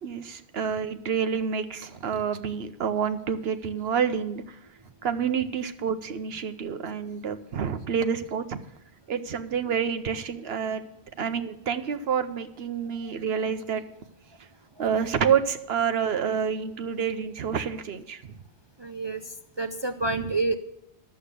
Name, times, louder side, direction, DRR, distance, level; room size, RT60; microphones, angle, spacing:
voice 1, 0.0-4.6 5.0-8.6 9.1-10.8 11.2-13.8 14.8-18.3, right 7 dB, 70° right, 10 dB, 0.9 m, -28 dB
voice 2, 18.8-20.6, right 3 dB, 45° right, 8 dB, 0.3 m, -29 dB
11.5 x 7.8 x 6.7 m, 0.78 s
omnidirectional pair, 1.1 m